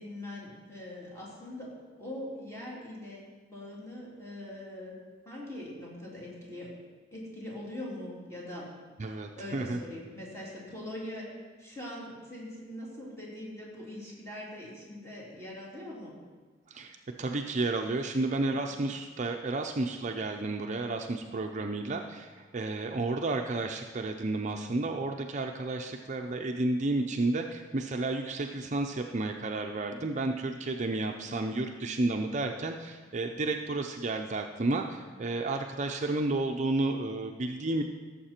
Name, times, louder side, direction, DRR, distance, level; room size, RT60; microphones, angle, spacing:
voice 1, 0.0-1.7 2.0-5.0 5.2-6.7 7.1-8.7 9.0-11.3 11.6-16.1, left 1 dB, 15° left, -6 dB, 3.3 m, -42 dB
voice 2, 9.0-9.8 16.7-37.8, right 2 dB, 40° right, 4 dB, 0.6 m, -32 dB
16.5 x 7.3 x 4.4 m, 1.4 s
head